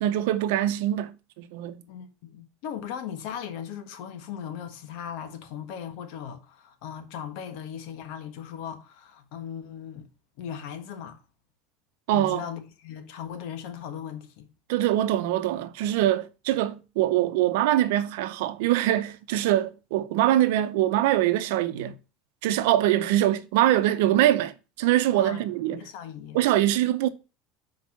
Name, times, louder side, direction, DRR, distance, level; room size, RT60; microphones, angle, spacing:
voice 1, 0.0-1.8 12.1-12.4 14.7-21.9 22.4-25.8 26.3-27.1, right 13 dB, 80° right, 0.7 m, -23 dB
voice 2, 1.9-10.1 10.4-11.2 12.1-14.5 25.1-25.5 25.7-26.4, left 8 dB, 70° left, 1.4 m, -38 dB
6.1 x 4.7 x 5.8 m
supercardioid pair, 105°, 0 cm